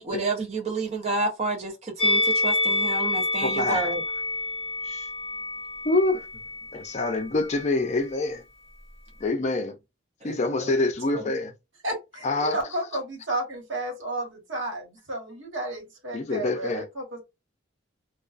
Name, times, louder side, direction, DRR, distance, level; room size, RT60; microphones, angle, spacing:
voice 1, 0.0-4.0 10.2-10.7 11.1-11.2, right 3 dB, 30° right, 0.6 m, -30 dB
Musical instrument, 2.0-7.2 7.5-7.7, left 2 dB, 5° left, 1.2 m, -27 dB
voice 2, 3.4-3.9 4.9-5.1 5.9-6.2 6.7-8.4 9.2-9.7 10.2-11.5 12.2-12.8 14.6-14.7 16.1-16.9, left 2 dB, 35° left, 0.4 m, -26 dB
voice 3, 11.8-17.2, right 1 dB, 70° right, 1.3 m, -32 dB
2.3 x 2.2 x 2.3 m
head